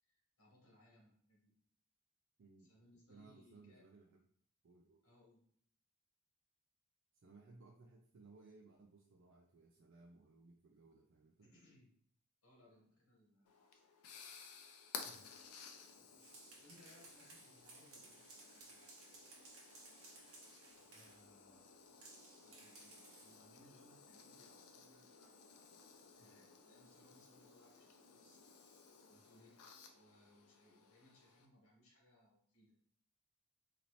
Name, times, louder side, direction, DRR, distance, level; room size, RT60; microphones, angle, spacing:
voice 1, 0.0-1.5 2.6-3.8 5.0-5.5 11.4-11.9 12.4-13.9 16.5-19.0 20.9-21.8 22.4-25.5 25.8-28.4 29.1-29.6 29.9-32.8, left 1 dB, 70° left, -2 dB, 1.5 m, -68 dB
voice 2, 2.4-2.7 3.1-4.3 4.6-5.0 7.1-11.5 15.0-15.5 17.5-17.6 26.2-26.3, right 3 dB, 55° right, 1 dB, 0.4 m, -62 dB
sound 1, 13.5-31.5, left 6 dB, 85° left, 0.5 m, -57 dB
sound 2, 16.0-21.2 22.0-23.4, right 2 dB, 75° right, 1.1 m, -60 dB
3.9 x 2.8 x 3.1 m, 0.63 s
head